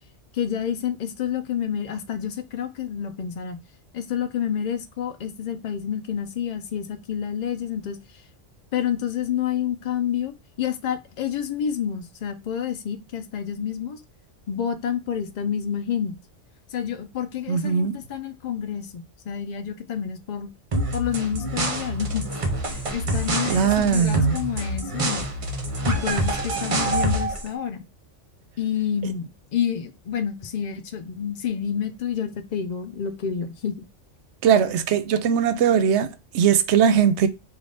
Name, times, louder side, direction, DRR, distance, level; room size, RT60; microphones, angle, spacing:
voice 1, 0.3-3.6 3.9-8.0 8.7-14.0 14.5-16.1 16.7-20.5 20.9-22.3 22.7-25.2 25.9-27.8 28.6-33.8, left 8 dB, 55° left, 0.5 m, -29 dB
voice 2, 17.5-18.0 23.5-24.4 34.4-37.3, right 7 dB, 70° right, 0.8 m, -20 dB
sound 1, 20.7-27.5, right 1 dB, 40° right, 0.5 m, -26 dB
3.4 x 2.4 x 3.8 m
omnidirectional pair, 1.3 m